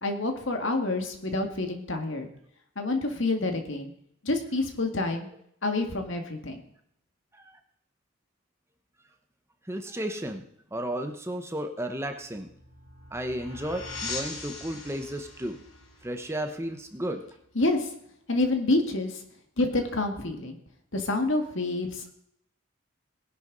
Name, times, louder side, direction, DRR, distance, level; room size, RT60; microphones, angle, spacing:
voice 1, 0.0-2.3 2.8-3.9 4.2-5.3 5.6-6.6 17.6-17.9 18.3-19.2 19.6-20.6 20.9-22.1, left 2 dB, 65° left, 4 dB, 2.1 m, -28 dB
voice 2, 9.6-10.4 10.7-12.5 13.1-15.6 16.0-17.2, right 1 dB, 10° right, 5 dB, 0.9 m, -33 dB
sound 1, 12.2-17.5, left 3 dB, 80° left, 2.8 m, -41 dB
18.5 x 11.0 x 4.0 m, 0.72 s
head